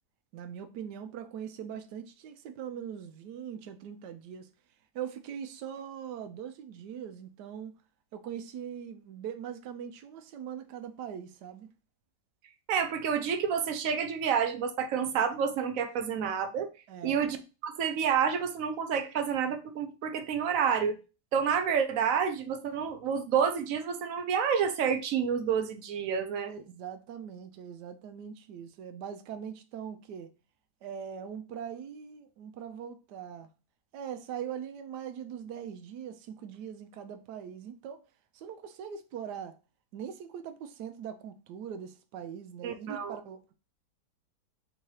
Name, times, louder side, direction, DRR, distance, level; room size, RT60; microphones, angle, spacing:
voice 1, 0.3-4.5 4.9-7.7 8.1-11.7 16.9-17.3 26.5-30.3 30.8-33.5 33.9-38.0 38.3-39.6 39.9-43.5, right 8 dB, 90° right, 1.2 m, -41 dB
voice 2, 12.7-16.7 17.0-17.4 17.6-21.0 21.3-26.5 42.6-43.2, right 7 dB, 65° right, 0.9 m, -29 dB
3.8 x 2.8 x 4.6 m
omnidirectional pair, 1.7 m